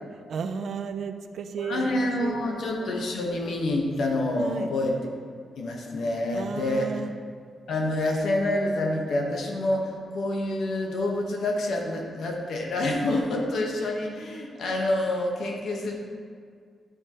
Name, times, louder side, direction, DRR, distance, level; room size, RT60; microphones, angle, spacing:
voice 1, 0.3-2.9 4.4-4.7 6.3-7.1, right 5 dB, 75° right, 9 dB, 0.5 m, -34 dB
voice 2, 1.6-4.9 5.6-6.9 7.7-15.9, left 1 dB, 80° left, 0 dB, 1.3 m, -27 dB
11.0 x 6.5 x 3.1 m, 2.1 s
cardioid pair, 65°, 0 cm